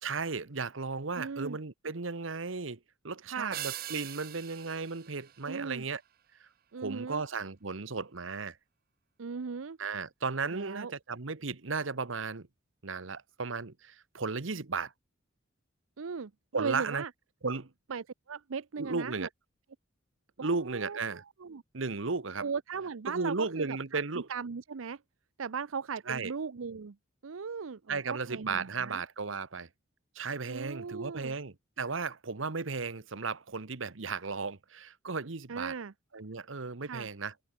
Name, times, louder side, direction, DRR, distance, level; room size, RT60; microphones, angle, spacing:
voice 1, 0.0-6.0 6.4-6.5 6.8-8.6 9.8-12.5 12.8-14.9 16.5-17.0 17.4-17.7 18.8-19.3 20.4-21.2 21.7-22.5 23.1-24.3 26.1-26.3 27.9-29.7 30.1-35.7 36.1-37.3, right 4 dB, 75° right, 1.1 m, -35 dB
voice 2, 1.2-1.6 3.2-3.5 5.5-5.8 6.7-7.2 9.2-9.8 10.5-10.9 16.0-17.1 17.9-19.3 20.4-21.6 22.4-24.0 24.3-25.0 25.4-27.0 27.2-29.0 30.5-31.3 35.5-35.9 36.8-37.1, right 5 dB, 90° right, 0.6 m, -38 dB
sound 1, 3.5-6.1, right 13 dB, 50° right, 0.5 m, -42 dB
head